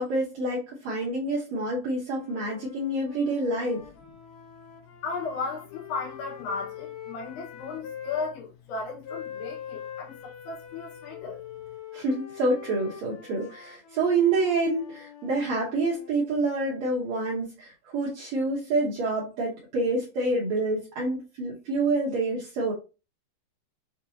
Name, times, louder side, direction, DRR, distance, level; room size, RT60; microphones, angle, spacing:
voice 1, 0.0-3.8 11.9-22.7, right 2 dB, 85° right, 1.5 m, -27 dB
sound 1, 2.1-8.3 9.0-16.1, left 9 dB, 70° left, 2.1 m, -44 dB
voice 2, 5.0-11.4, left 4 dB, 90° left, 3.3 m, -35 dB
6.6 x 2.7 x 2.8 m
omnidirectional pair, 4.6 m